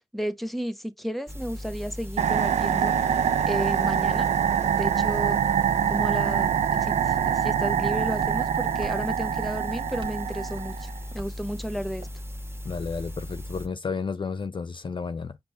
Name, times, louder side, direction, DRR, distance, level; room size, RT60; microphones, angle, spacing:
voice 1, 0.1-3.0 3.5-4.3 4.7-5.4 5.9-12.1, equal, ahead, 1.0 m, -33 dB
sound 1, 1.3-13.7, equal, 20° right, 1.4 m, -37 dB
sound 2, 2.2-11.0, right 8 dB, 85° right, 0.4 m, -25 dB
Walk footsteps, 6.8-13.0, right 2 dB, 45° right, 1.5 m, -48 dB
voice 2, 12.6-15.4, left 5 dB, 45° left, 0.5 m, -32 dB
5.3 x 2.6 x 3.3 m
cardioid pair, 40°, 11 cm